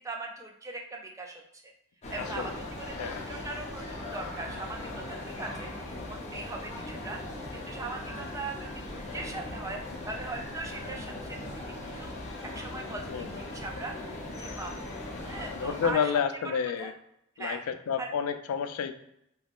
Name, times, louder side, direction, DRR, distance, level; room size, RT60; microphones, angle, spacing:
voice 1, 0.0-1.7 2.1-5.7 6.1-7.2 7.5-11.4 11.9-12.1 12.5-14.0 14.4-14.9 15.3-16.9 17.4-17.6 18.0-18.1, right 3 dB, 15° right, 2 dB, 0.3 m, -40 dB
sound 1, 2.0-15.9, left 2 dB, 30° left, 0.7 m, -39 dB
voice 2, 2.2-2.5 3.0-3.2 13.1-13.3 15.5-16.9 17.4-18.9, left 7 dB, 85° left, 9 dB, 0.3 m, -30 dB
3.4 x 2.9 x 2.4 m, 0.76 s
head